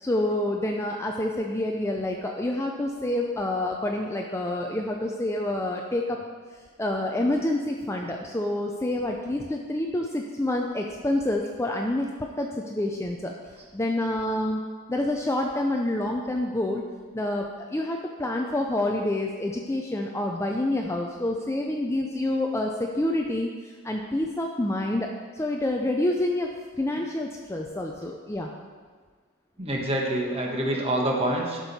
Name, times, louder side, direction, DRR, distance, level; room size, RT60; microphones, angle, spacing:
voice 1, 0.0-6.2 6.8-12.1 12.4-13.3 13.7-14.6 14.9-16.8 17.1-25.1 25.3-26.5 26.8-28.5, left 1 dB, 10° left, 1 dB, 0.4 m, -27 dB
voice 2, 29.6-31.6, right 1 dB, 25° right, 0 dB, 1.2 m, -26 dB
11.5 x 6.1 x 4.2 m, 1.5 s
head